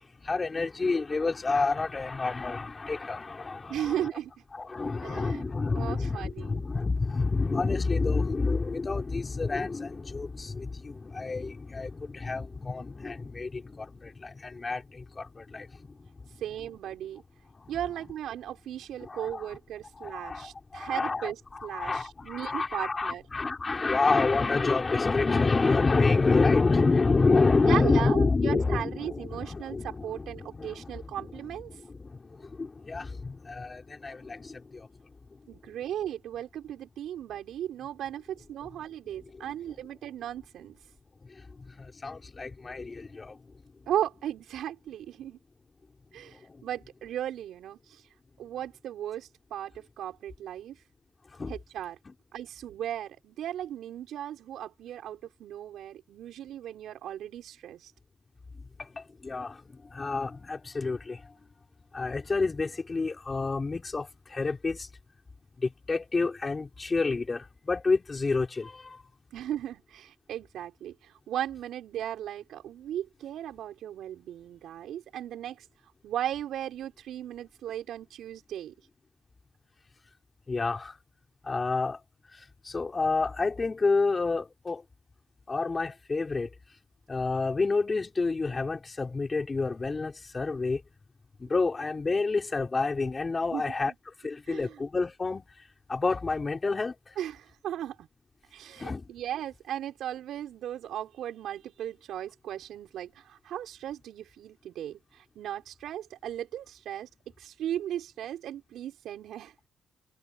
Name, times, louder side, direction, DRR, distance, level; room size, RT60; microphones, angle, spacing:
voice 1, 0.2-4.1 4.5-16.1 17.6-17.7 19.0-19.6 20.0-35.0 35.3-35.4 35.7-35.8 39.3-39.4 41.2-43.4 46.3-46.6 51.4-51.6 58.8-61.3 61.9-64.9 65.6-69.0 80.5-81.0 81.4-82.0 82.3-84.8 85.5-86.5 87.1-90.8 91.4-93.9 94.2-95.5 95.9-97.2 98.8-99.1, left 3 dB, 30° left, 5.8 m, -29 dB
voice 2, 3.7-4.3 5.0-6.7 16.4-17.2 17.7-23.2 27.6-31.7 35.5-40.8 43.9-45.4 46.1-48.0 48.4-50.8 51.5-52.0 52.3-57.9 69.3-75.7 76.0-78.7 93.5-93.7 94.5-94.8 97.2-98.1 98.5-107.1 107.4-109.7, right 11 dB, 75° right, 5.7 m, -36 dB
cardioid pair, 90°, 0 cm